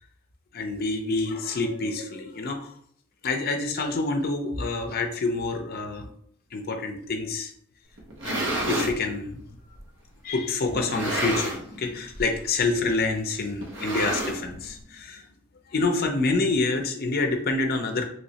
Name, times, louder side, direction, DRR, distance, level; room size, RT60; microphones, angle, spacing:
voice 1, 0.5-2.7 3.2-6.1 6.5-7.5 8.2-9.4 10.2-15.3 15.7-18.1, left 3 dB, 45° left, 5 dB, 0.5 m, -27 dB
sound 1, 8.0-9.0 9.7-9.8 10.7-11.8 12.1-12.4 12.6-12.7 13.6-14.7, right 1 dB, 60° right, 0.7 m, -29 dB
3.1 x 3.0 x 2.8 m, 0.65 s
head